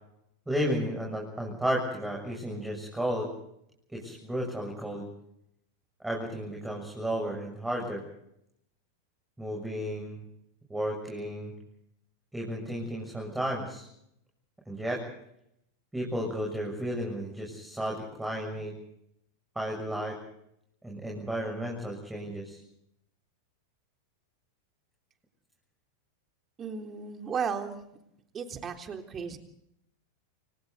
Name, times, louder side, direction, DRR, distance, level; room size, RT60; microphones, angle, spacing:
voice 1, 0.5-3.3 3.9-5.1 6.0-8.0 9.4-10.2 10.7-11.5 12.3-13.9 14.7-15.0 15.9-18.7 19.6-20.2 20.8-22.6, equal, 5° right, -1 dB, 7.1 m, -33 dB
voice 2, 26.6-27.8 28.3-29.4, right 6 dB, 25° right, 5 dB, 3.7 m, -34 dB
29.5 x 26.5 x 4.1 m, 0.75 s
figure-of-eight pair, 90°, 0 cm